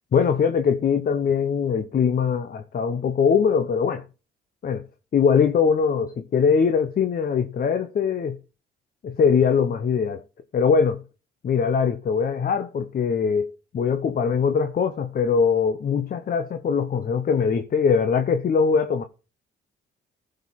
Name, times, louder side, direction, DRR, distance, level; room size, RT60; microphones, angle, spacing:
voice 1, 0.1-4.0 4.6-4.8 5.1-8.4 9.0-10.2 10.5-11.0 11.4-19.0, left 6 dB, 50° left, 1.0 m, -22 dB
14.0 x 5.4 x 4.2 m
cardioid pair, 90°, 20 cm